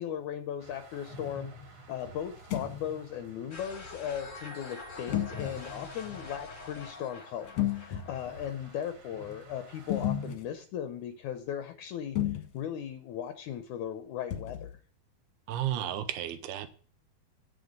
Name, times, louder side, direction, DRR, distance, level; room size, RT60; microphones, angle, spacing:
voice 1, 0.0-1.5 1.9-14.7, left 9 dB, 75° left, 1.8 m, -37 dB
sound 1, 0.6-10.3, left 1 dB, 40° right, 2.6 m, -47 dB
sound 2, 2.4-2.8 5.1-5.6 7.4-8.3 9.9-10.5 12.2-12.6 14.3-14.7, left 12 dB, 55° left, 1.8 m, -32 dB
sound 3, 3.5-8.9, left 3 dB, 30° left, 1.4 m, -46 dB
voice 2, 15.5-16.7, right 11 dB, 85° right, 2.9 m, -33 dB
9.3 x 7.9 x 5.1 m
omnidirectional pair, 4.4 m